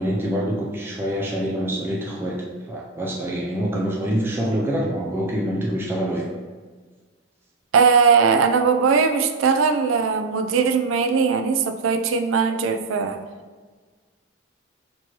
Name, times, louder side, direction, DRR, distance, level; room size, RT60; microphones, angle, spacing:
voice 1, 0.0-6.3, equal, 10° right, -3 dB, 0.3 m, -25 dB
voice 2, 7.7-13.2, right 5 dB, 85° right, 7 dB, 0.3 m, -19 dB
4.4 x 3.0 x 2.9 m, 1.4 s
head